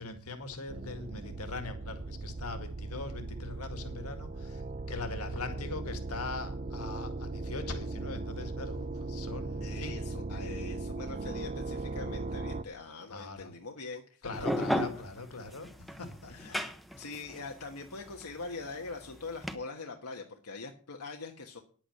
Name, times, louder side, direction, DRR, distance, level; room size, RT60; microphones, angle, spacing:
voice 1, 0.0-4.6 4.9-9.9 13.1-13.5 14.2-15.7 16.0-16.6, left 3 dB, 70° left, 8 dB, 2.1 m, -41 dB
sound 1, 0.7-12.6, right 2 dB, 35° right, 0.6 m, -38 dB
voice 2, 9.6-14.3 16.3-21.6, left 3 dB, 85° left, 2 dB, 1.4 m, -43 dB
sound 2, 14.3-19.5, equal, ahead, 0.9 m, -34 dB
10.0 x 8.7 x 6.6 m, 0.42 s
head